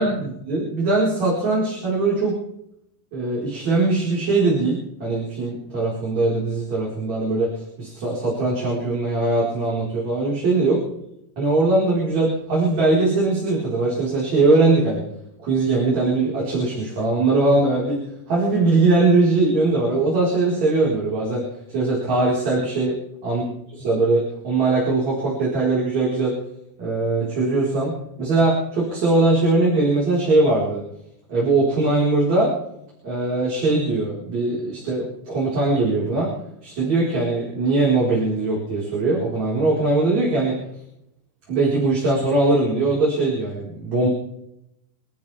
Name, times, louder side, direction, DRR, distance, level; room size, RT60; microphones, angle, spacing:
voice 1, 0.0-2.4 3.1-7.5 7.8-10.8 11.4-15.0 15.4-18.0 18.3-23.0 23.2-23.4 23.7-26.4 26.8-30.8 31.3-32.5 33.0-36.3 36.6-40.6 41.5-44.1, right 2 dB, 60° right, -6 dB, 6.2 m, -21 dB
27.0 x 13.5 x 3.6 m, 0.79 s
omnidirectional pair, 3.7 m